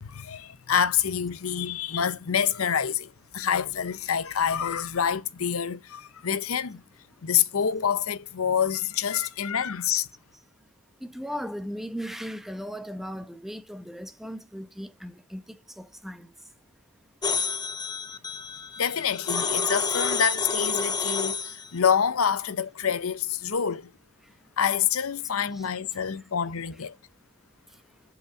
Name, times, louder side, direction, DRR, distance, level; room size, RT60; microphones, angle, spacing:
voice 1, 0.0-6.8 7.2-10.1 18.8-23.9 24.6-27.0, left 8 dB, 80° left, 0.7 m, -27 dB
voice 2, 11.0-16.5 24.2-24.5 25.5-25.7 27.7-28.0, equal, ahead, 1.0 m, -38 dB
sound 1, 17.2-21.7, left 5 dB, 20° left, 0.7 m, -29 dB
8.2 x 6.1 x 5.8 m
head